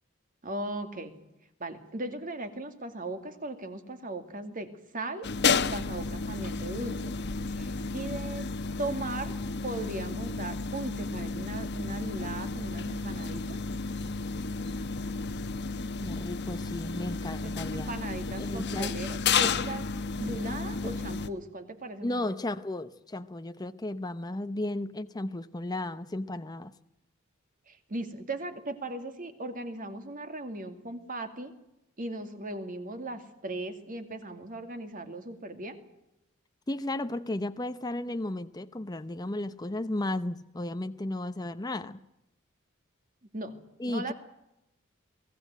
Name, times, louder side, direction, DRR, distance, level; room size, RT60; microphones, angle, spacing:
voice 1, 0.4-1.1 1.6-4.7 4.9-7.0 7.6-8.5 8.8-9.3 9.6-13.6 17.4-19.8 20.2-22.3 27.7-31.5 32.0-35.8 43.3-43.5 43.9-44.1, right 2 dB, 40° right, 2.4 m, -38 dB
sound 1, 5.2-21.3, left 4 dB, 55° left, 1.1 m, -32 dB
voice 2, 16.0-18.0 18.4-19.0 22.0-26.7 36.7-42.0 43.8-44.1, left 1 dB, 20° left, 0.7 m, -34 dB
23.0 x 16.5 x 9.3 m
head